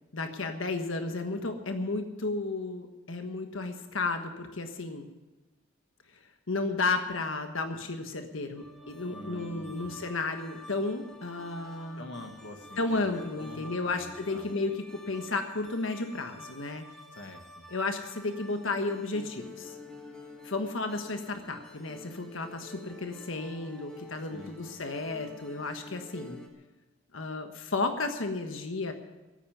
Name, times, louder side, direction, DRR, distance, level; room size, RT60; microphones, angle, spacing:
voice 1, 0.1-5.1 6.5-12.1 12.8-16.8 17.7-19.8 20.4-26.4 27.1-28.9, left 3 dB, 85° left, 6 dB, 1.4 m, -33 dB
sound 1, 8.6-26.5, left 1 dB, 5° left, 2.0 m, -48 dB
voice 2, 9.1-10.0 12.0-14.5 17.1-17.6 24.3-24.6, left 1 dB, 65° left, 4 dB, 1.6 m, -46 dB
14.0 x 9.0 x 9.3 m, 1.2 s
head